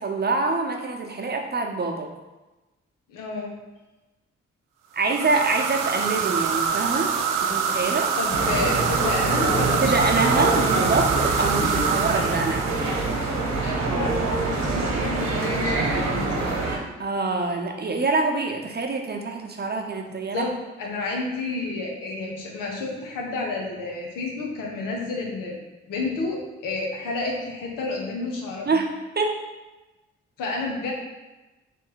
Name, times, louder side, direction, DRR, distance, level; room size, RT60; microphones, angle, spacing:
voice 1, 0.0-2.1 4.9-7.1 7.4-8.1 9.8-12.6 17.0-20.5 28.7-29.4, right 3 dB, 30° right, 2 dB, 0.8 m, -25 dB
voice 2, 3.1-3.6 8.2-10.7 11.6-11.8 12.1-12.2 13.6-16.6 20.3-20.5 20.8-25.6 25.9-28.8 30.4-30.9, left 3 dB, 80° left, -1 dB, 1.0 m, -30 dB
sound 1, 5.0-13.5, right 6 dB, 80° right, 0.5 m, -26 dB
sound 2, 8.3-16.8, right 3 dB, 55° right, 1.1 m, -25 dB
3.4 x 3.1 x 4.7 m, 1.1 s
hypercardioid pair, 40°, 32 cm